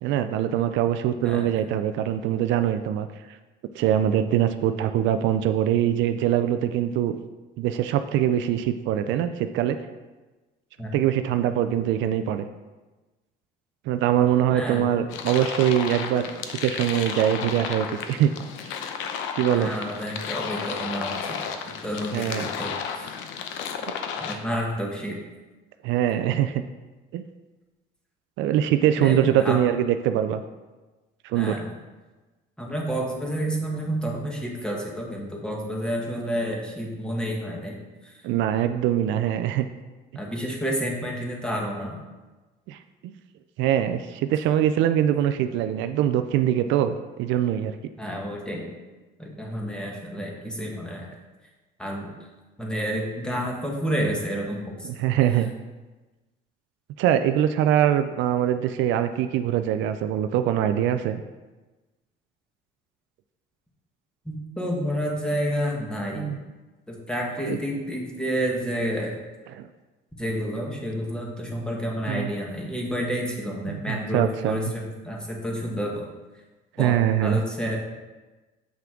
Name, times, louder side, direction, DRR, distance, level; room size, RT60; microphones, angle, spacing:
voice 1, 0.0-3.1 3.7-7.2 7.6-9.8 10.9-12.5 13.9-18.3 19.4-19.7 22.1-22.5 25.8-26.6 27.1-27.2 28.4-30.4 31.2-31.6 38.2-39.7 42.7-42.8 43.0-43.1 43.6-47.7 54.8-55.5 57.0-61.2 66.1-66.4 67.5-67.6 69.5-69.7 72.1-72.3 73.7-74.7 76.8-77.4, right 11 dB, 75° right, 9 dB, 0.4 m, -23 dB
voice 2, 14.5-14.9 19.5-21.5 21.8-23.1 24.1-25.2 29.0-29.6 31.3-31.7 32.6-38.1 40.1-42.0 48.0-48.7 49.2-51.1 51.8-52.1 52.6-54.9 64.2-66.4 66.9-69.2 70.2-76.1 76.8-77.8, equal, 5° left, -1 dB, 1.4 m, -30 dB
sound 1, 15.1-24.4, left 7 dB, 85° left, 0.7 m, -33 dB
7.5 x 5.8 x 3.7 m, 1.2 s
cardioid pair, 125°, 19 cm